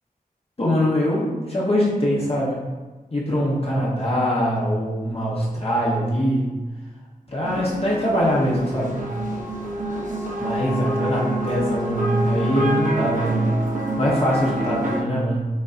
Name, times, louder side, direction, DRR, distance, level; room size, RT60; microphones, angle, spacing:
voice 1, 0.6-2.6 3.1-6.6 7.3-9.1 10.4-13.5 14.0-15.5, equal, 40° left, -5 dB, 0.8 m, -22 dB
sound 1, 7.4-15.0, right 1 dB, 55° right, 0.8 m, -27 dB
6.4 x 2.6 x 2.5 m, 1.3 s
wide cardioid pair, 60°, 15 cm